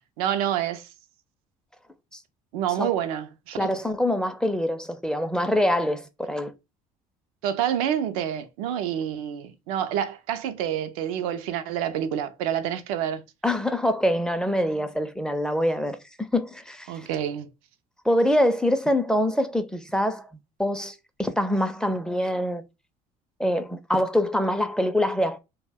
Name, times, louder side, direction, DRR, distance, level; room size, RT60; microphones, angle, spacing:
voice 1, 0.2-0.9 2.5-3.7 7.4-13.2 16.9-17.5, right 10 dB, 85° right, 0.4 m, -28 dB
voice 2, 3.6-6.5 13.4-17.1 18.0-20.3 20.6-22.6 23.4-25.4, left 1 dB, 5° left, 0.4 m, -25 dB
2.2 x 2.1 x 3.3 m
supercardioid pair, 80°, 18 cm